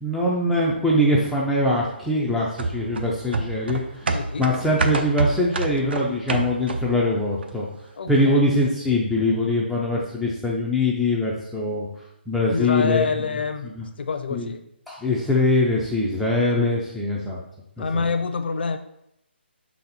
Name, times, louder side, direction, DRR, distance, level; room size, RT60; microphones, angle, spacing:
voice 1, 0.0-4.1 4.4-7.7 8.1-11.9 12.3-13.1 13.8-13.9 14.3-14.5 14.9-17.4 17.8-18.1, left 1 dB, ahead, -6 dB, 0.4 m, -22 dB
sound 1, 2.6-7.1 7.4-7.5, right 3 dB, 60° right, 0.7 m, -27 dB
voice 2, 4.1-4.5 8.0-8.6 12.5-13.7 14.0-14.6 17.8-18.8, left 4 dB, 60° left, 9 dB, 0.6 m, -26 dB
5.9 x 4.2 x 4.0 m, 0.80 s
hypercardioid pair, 160°, 6 cm